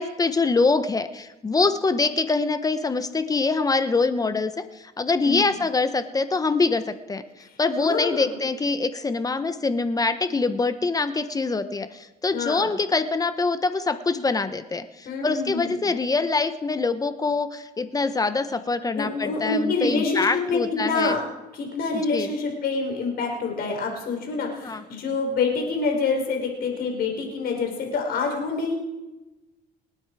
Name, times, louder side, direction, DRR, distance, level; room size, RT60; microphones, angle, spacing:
voice 1, 0.0-21.2 22.1-22.3 24.6-24.8, left 3 dB, 20° left, 11 dB, 0.9 m, -24 dB
voice 2, 5.2-5.5 7.8-8.3 12.3-12.7 15.0-15.8 18.9-21.2 21.5-28.7, left 4 dB, 65° left, 2 dB, 4.8 m, -26 dB
26.5 x 9.2 x 4.8 m, 1.1 s
cardioid pair, 110°, 17 cm